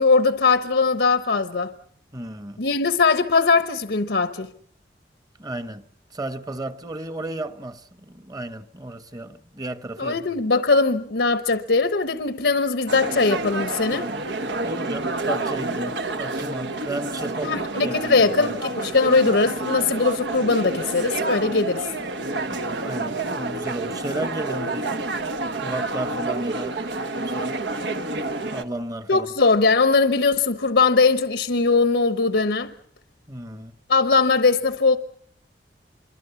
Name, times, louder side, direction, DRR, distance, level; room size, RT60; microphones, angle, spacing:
voice 1, 0.0-1.7 2.6-4.5 10.0-14.1 17.4-21.9 29.1-32.7 33.9-35.0, left 4 dB, 80° left, 1.0 m, -20 dB
voice 2, 2.1-2.6 5.4-5.8 6.1-10.3 14.6-18.6 22.3-25.1 25.6-26.9 27.2-27.6 28.5-29.3 33.3-33.7, right 1 dB, 20° right, 1.1 m, -33 dB
sound 1, 12.9-28.6, right 2 dB, 85° right, 1.3 m, -29 dB
26.0 x 23.0 x 7.1 m
head